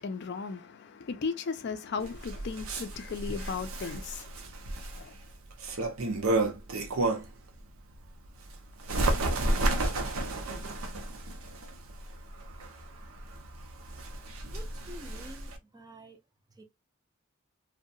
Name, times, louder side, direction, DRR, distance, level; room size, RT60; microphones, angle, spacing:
voice 1, 0.0-4.2 4.9-5.1, left 5 dB, 50° left, 0.4 m, -36 dB
Bird, 2.0-7.4 7.9-15.6, right 2 dB, 85° right, 0.6 m, -32 dB
voice 2, 14.5-16.2 16.5-16.6, right 1 dB, 20° right, 0.4 m, -49 dB
2.7 x 2.1 x 2.6 m
head